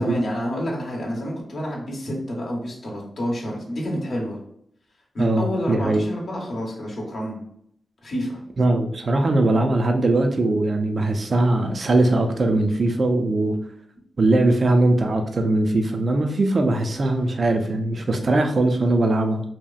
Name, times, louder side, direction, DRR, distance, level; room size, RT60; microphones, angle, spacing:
voice 1, 0.0-4.4 5.1-7.4 8.0-8.4, equal, 65° left, -2 dB, 0.8 m, -28 dB
voice 2, 5.2-6.0 8.6-13.6 14.2-19.4, right 2 dB, 50° right, 5 dB, 0.3 m, -20 dB
2.8 x 2.2 x 2.3 m, 0.69 s
cardioid pair, 70°, 0 cm